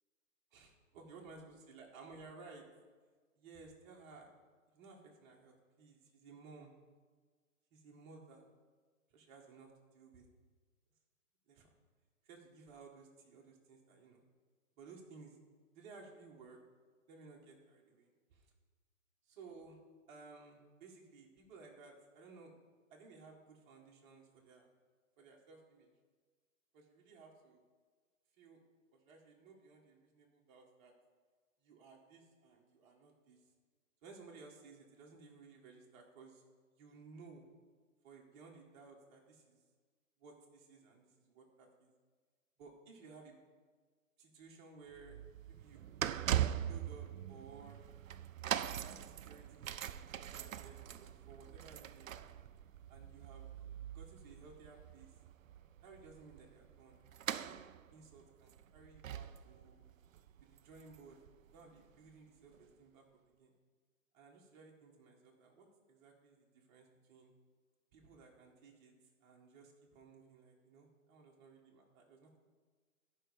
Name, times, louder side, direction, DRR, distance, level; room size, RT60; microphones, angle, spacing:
voice 1, 0.5-2.6 3.4-4.3 4.7-6.7 7.7-8.5 9.1-10.3 11.5-11.7 12.2-14.2 14.8-15.4 15.7-16.6 17.1-18.5 19.3-19.8 20.1-22.5 22.9-24.7 25.2-25.9 26.7-27.6 28.4-28.6 28.9-30.9 31.6-33.4 34.0-36.4 36.7-37.4 38.0-39.6 40.2-41.9 42.6-43.3 44.2-45.2 45.5-45.8 46.4-47.8 48.7-49.9 50.3-52.2 52.9-53.5 53.9-55.2 55.8-57.0 57.3-57.6 57.9-59.8 60.4-61.2 61.5-63.0 63.4-63.5 64.1-67.3 67.9-68.9 69.2-72.4, right 4 dB, 35° right, -1 dB, 2.0 m, -57 dB
sound 1, 44.9-61.9 62.5-62.6, right 11 dB, 70° right, 0.5 m, -42 dB
12.5 x 5.5 x 5.2 m, 1.5 s
figure-of-eight pair, 130°, 41 cm